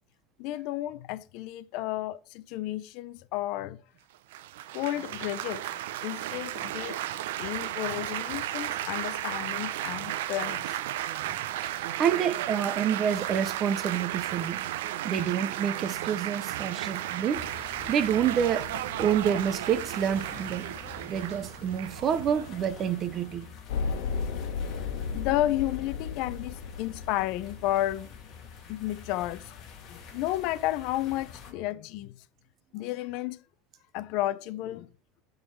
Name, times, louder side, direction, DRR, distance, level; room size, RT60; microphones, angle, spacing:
voice 1, 0.4-3.8 4.7-5.6 6.0-7.0 7.4-10.8 25.1-28.1 28.7-32.2 32.7-33.4 33.9-34.9, left 14 dB, 50° left, 0.6 m, -32 dB
Laughter / Applause / Chatter, 4.3-23.4, right 13 dB, 85° right, 0.5 m, -34 dB
voice 2, 11.2-14.6 15.0-18.7 19.0-20.7 21.1-23.5, right 8 dB, 30° right, 0.7 m, -28 dB
sound 1, 17.3-31.5, left 6 dB, 30° left, 2.2 m, -47 dB
sound 2, 23.7-28.0, left 5 dB, 75° left, 1.3 m, -34 dB
11.0 x 3.8 x 4.6 m
supercardioid pair, 165°, 0 cm